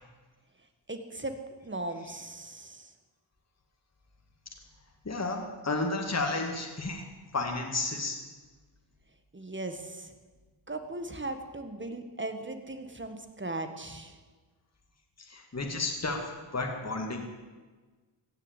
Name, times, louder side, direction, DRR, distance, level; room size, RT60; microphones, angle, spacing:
voice 1, 0.9-1.3 1.6-2.9 9.3-10.1 10.7-14.2, right 2 dB, 25° right, 7 dB, 1.7 m, -38 dB
voice 2, 5.1-8.2 15.3-16.2 16.5-17.2, left 3 dB, 30° left, 2 dB, 2.2 m, -32 dB
16.0 x 6.9 x 9.2 m, 1.3 s
cardioid pair, 60°, 49 cm